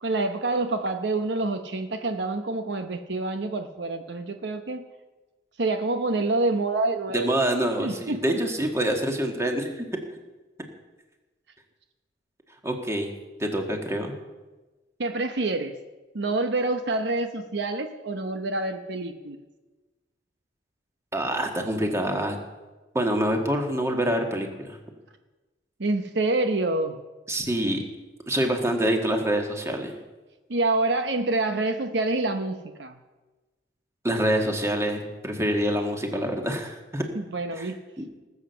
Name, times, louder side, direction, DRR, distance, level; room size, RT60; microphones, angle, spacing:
voice 1, 0.0-4.8 5.6-7.3 7.8-8.4 15.0-15.7 16.1-19.4 25.8-27.0 30.5-33.0 37.1-37.8, right 2 dB, 65° right, 7 dB, 0.9 m, -27 dB
voice 2, 7.1-9.9 12.6-13.1 13.4-14.1 21.1-22.4 22.9-24.8 27.3-27.8 28.3-30.0 34.0-37.0 37.5-37.7 38.0-38.1, right 1 dB, 15° right, 3 dB, 1.8 m, -26 dB
19.0 x 8.0 x 6.9 m, 1.2 s
head